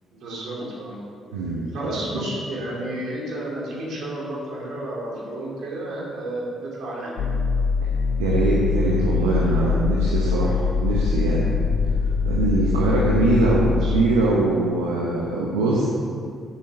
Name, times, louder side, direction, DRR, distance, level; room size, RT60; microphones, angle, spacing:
voice 1, 0.1-1.0 1.7-7.3 9.5-9.8 13.6-13.9, right 1 dB, 65° right, -4 dB, 2.8 m, -32 dB
voice 2, 1.3-1.7 2.1-2.3 8.2-11.5 12.2-15.8, right 2 dB, 85° right, -4 dB, 1.0 m, -22 dB
sound 1, 7.2-14.0, left 5 dB, 75° left, 0.8 m, -23 dB
9.4 x 7.0 x 5.4 m, 2.3 s
hypercardioid pair, 45°, 0 cm